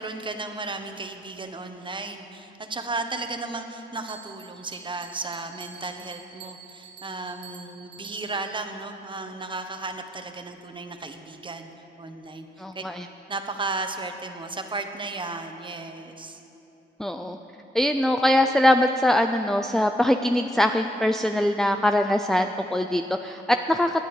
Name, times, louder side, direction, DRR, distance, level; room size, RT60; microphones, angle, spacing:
voice 1, 0.0-11.7 12.0-12.8 13.3-16.4, right 3 dB, 25° right, 6 dB, 1.2 m, -34 dB
Bell, 4.1-8.6, right 6 dB, 55° right, 1.4 m, -47 dB
voice 2, 12.6-13.1 17.0-17.4 17.7-24.0, left 1 dB, ahead, 6 dB, 0.5 m, -22 dB
21.5 x 9.0 x 4.9 m, 2.8 s
cardioid pair, 90°, 20 cm